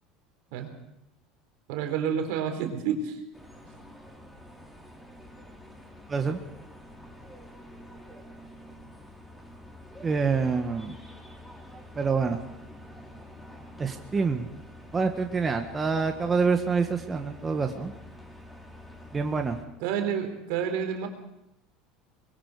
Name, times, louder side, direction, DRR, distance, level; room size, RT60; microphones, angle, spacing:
voice 1, 1.7-3.2 19.8-21.1, right 7 dB, 70° right, 6 dB, 3.9 m, -29 dB
sound 1, 3.3-19.6, left 1 dB, 10° left, 6.2 m, -47 dB
voice 2, 6.1-6.4 10.0-11.0 12.0-12.4 13.8-14.5 14.9-17.9 19.1-19.6, right 5 dB, 25° right, 5 dB, 1.7 m, -26 dB
24.0 x 22.0 x 5.1 m, 0.87 s
hypercardioid pair, 75°, 0 cm